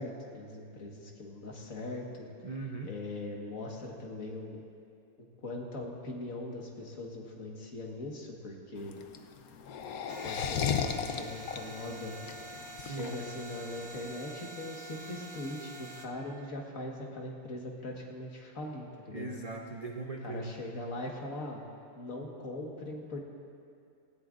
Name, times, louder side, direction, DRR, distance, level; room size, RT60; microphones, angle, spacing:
voice 1, 0.0-2.3 2.8-4.6 5.2-9.0 10.2-12.1 12.8-19.3 20.2-21.7 22.0-23.2, left 2 dB, 60° left, -1 dB, 1.9 m, -41 dB
voice 2, 2.4-2.9 12.8-13.1 19.1-20.5, right 3 dB, 45° right, 1 dB, 0.5 m, -39 dB
sound 1, 8.8-13.9, left 7 dB, 75° left, 1.2 m, -34 dB
sound 2, 10.1-16.1, right 1 dB, 70° right, 1.4 m, -47 dB
18.5 x 17.0 x 2.5 m, 2.4 s
omnidirectional pair, 1.6 m